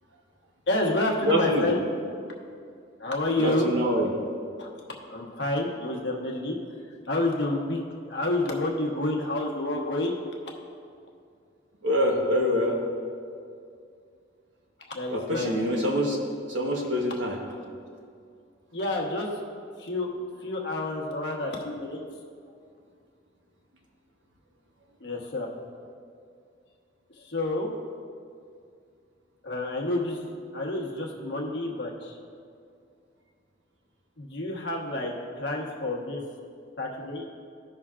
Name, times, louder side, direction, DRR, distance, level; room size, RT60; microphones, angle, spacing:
voice 1, 0.7-1.8 3.0-3.7 4.6-4.7 5.1-6.6 7.1-10.1 14.9-15.5 18.7-19.3 19.8-20.1 20.4-22.0 25.0-25.5 27.3-27.7 29.4-32.1 34.2-36.2 36.8-37.3, left 2 dB, 70° left, -1 dB, 1.2 m, -29 dB
voice 2, 1.2-1.7 3.4-4.1 11.8-12.8 15.1-16.2 16.5-17.4, equal, 80° right, 0 dB, 1.2 m, -25 dB
14.5 x 5.6 x 2.4 m, 2.3 s
head